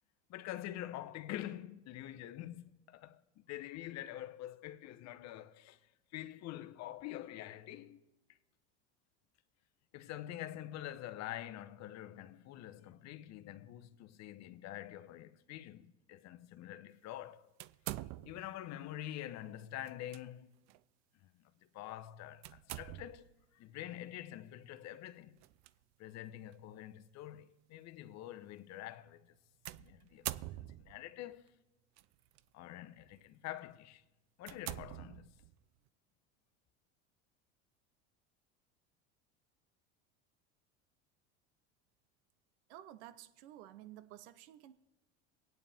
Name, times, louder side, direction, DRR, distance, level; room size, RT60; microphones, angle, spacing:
voice 1, 0.3-5.8 6.1-8.4 9.9-17.5 18.2-20.5 21.2-25.4 26.0-29.4 29.8-31.5 32.5-34.0 34.4-35.4, left 13 dB, 50° left, 0.9 m, -46 dB
sound 1, 17.6-18.6 19.9-20.2 20.7-20.8 22.4-23.3 25.4-25.7 26.5-26.6 29.7-31.1 32.0-32.4 33.0-33.2 33.7-33.8 34.4-35.6, right 16 dB, 55° right, 0.5 m, -45 dB
voice 2, 42.7-44.7, right 13 dB, 75° right, 0.9 m, -53 dB
24.5 x 9.2 x 3.5 m
hypercardioid pair, 95°, 34 cm